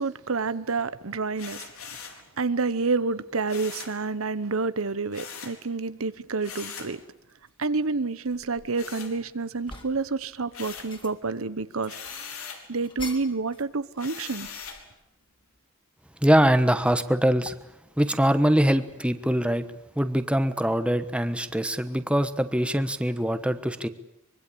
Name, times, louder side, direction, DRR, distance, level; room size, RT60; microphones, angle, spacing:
voice 1, 0.0-2.0 2.4-7.0 7.6-11.9 12.7-14.5, right 4 dB, 75° right, 1.0 m, -29 dB
sound 1, 1.4-2.2 3.5-4.0 5.1-5.6 6.4-7.0 8.7-9.6 10.0-11.0 11.8-12.7 14.0-14.9, left 6 dB, 90° left, 4.3 m, -41 dB
sound 2, 7.3-7.5 8.1-9.1 9.4-10.1 10.5-11.4 11.8-13.7 14.0-15.0, left 2 dB, 25° left, 3.3 m, -45 dB
voice 2, 16.2-17.5 18.0-19.6 20.0-23.9, equal, 5° right, 1.2 m, -23 dB
24.5 x 23.0 x 8.6 m
head